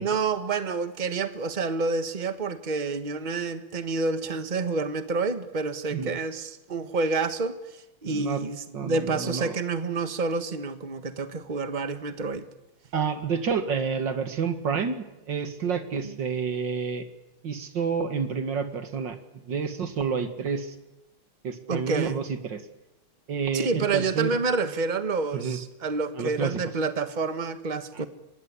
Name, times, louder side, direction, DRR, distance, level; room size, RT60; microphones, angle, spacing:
voice 1, 0.0-12.4 16.0-16.1 21.7-22.2 23.5-28.1, right 4 dB, 25° right, 10 dB, 1.3 m, -28 dB
voice 2, 8.0-8.4 8.7-9.6 12.9-17.1 17.4-19.2 19.5-20.8 21.4-22.6 23.3-24.4 25.3-25.6 26.2-26.6 27.9-28.1, right 6 dB, 60° right, 9 dB, 2.6 m, -29 dB
24.5 x 20.0 x 9.8 m, 0.95 s
omnidirectional pair, 2.3 m